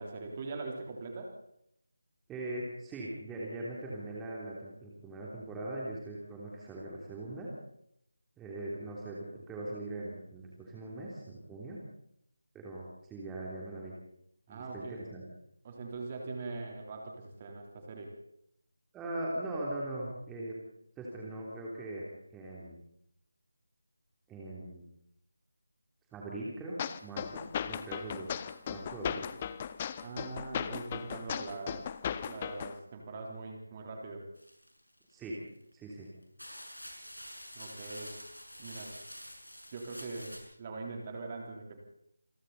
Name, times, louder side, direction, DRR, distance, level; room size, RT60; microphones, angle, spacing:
voice 1, 0.0-1.4 14.5-15.1 15.6-18.1 30.0-31.9 32.2-34.3 37.5-38.1 38.6-38.9 39.7-41.8, right 3 dB, 25° right, 1 dB, 3.7 m, -42 dB
voice 2, 2.3-7.5 8.4-11.8 12.5-13.9 14.5-15.2 18.9-20.5 21.0-22.0 22.3-22.8 24.3-24.8 26.1-28.3 28.7-29.2 35.1-35.4 35.7-36.1, right 1 dB, 5° right, -5 dB, 3.2 m, -40 dB
sound 1, 26.8-32.8, left 8 dB, 20° left, 0.7 m, -37 dB
sound 2, 34.4-35.2 35.9-36.0 36.4-40.4, equal, 90° left, 7.3 m, -47 dB
28.0 x 22.0 x 4.2 m, 0.74 s
figure-of-eight pair, 160°, 0 cm